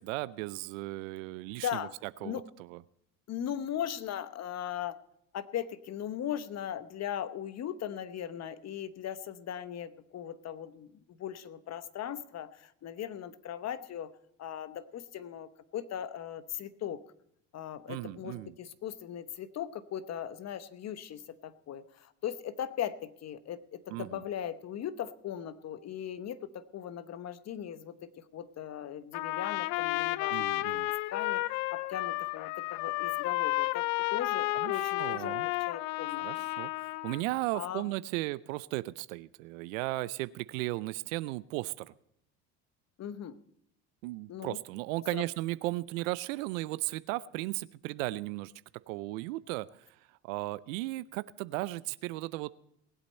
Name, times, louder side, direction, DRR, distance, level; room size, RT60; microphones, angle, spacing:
voice 1, 0.0-1.9 2.2-2.8 17.9-18.5 23.9-24.2 30.3-30.9 34.6-35.5 36.2-41.9 44.0-48.5 48.9-49.9 50.2-52.5, right 19 dB, 80° right, 17 dB, 0.5 m, -36 dB
voice 2, 1.6-1.9 2.2-2.4 3.3-5.0 5.3-14.1 14.4-17.0 17.5-30.5 31.1-31.4 31.7-36.4 37.5-37.9 43.0-43.4 44.3-44.6 45.1-45.2, left 10 dB, 40° left, 13 dB, 1.0 m, -39 dB
Trumpet, 29.1-37.2, left 21 dB, 70° left, 0.5 m, -32 dB
19.5 x 8.3 x 4.3 m, 0.73 s
supercardioid pair, 85°, 38 cm